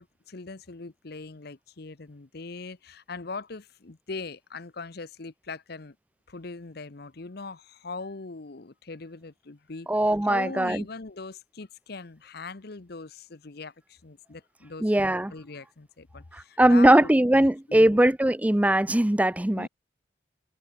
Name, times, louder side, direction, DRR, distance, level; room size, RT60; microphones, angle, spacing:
voice 1, 0.0-6.0 6.3-9.9 10.2-18.1 19.5-19.7, left 3 dB, 55° left, 0.9 m, -41 dB
voice 2, 9.9-10.8 14.8-15.3 16.3-19.7, right 1 dB, 5° right, 0.4 m, -20 dB
head